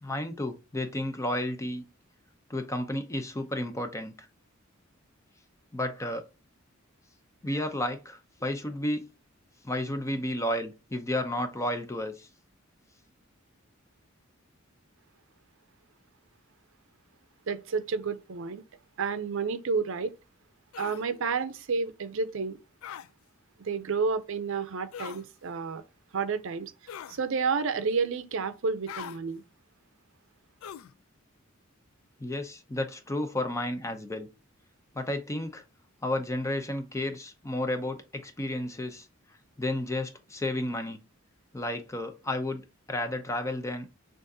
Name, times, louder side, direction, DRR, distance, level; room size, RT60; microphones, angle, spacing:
voice 1, 0.0-1.8 2.5-4.3 5.7-6.2 7.4-9.1 9.6-12.3 32.2-34.3 34.9-35.6 36.0-39.1 39.6-41.0 41.5-42.6 42.9-43.9, left 1 dB, 15° left, 0.5 m, -32 dB
voice 2, 17.5-18.6 19.0-20.1 20.8-22.6 23.6-25.8 26.1-26.7 27.1-29.4, right 5 dB, 70° right, 0.5 m, -30 dB
sound 1, 20.7-21.0 22.8-23.1 24.9-25.2 26.9-27.2 28.9-29.2 30.6-30.9, left 9 dB, 80° left, 0.3 m, -41 dB
6.3 x 2.5 x 2.7 m
head